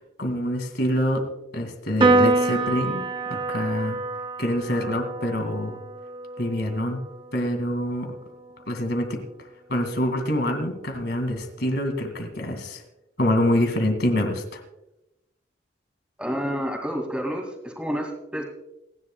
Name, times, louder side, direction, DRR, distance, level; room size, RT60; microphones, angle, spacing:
voice 1, 0.2-1.3 1.5-3.0 3.3-4.0 4.4-5.8 6.4-7.0 7.3-8.2 8.7-9.2 9.7-12.8 13.2-14.6, left 1 dB, 60° left, 5 dB, 2.3 m, -25 dB
Piano, 2.0-8.7, right 2 dB, 25° right, 0.7 m, -26 dB
voice 2, 16.2-18.4, equal, 5° right, 2 dB, 2.3 m, -29 dB
27.5 x 11.0 x 2.3 m, 0.91 s
head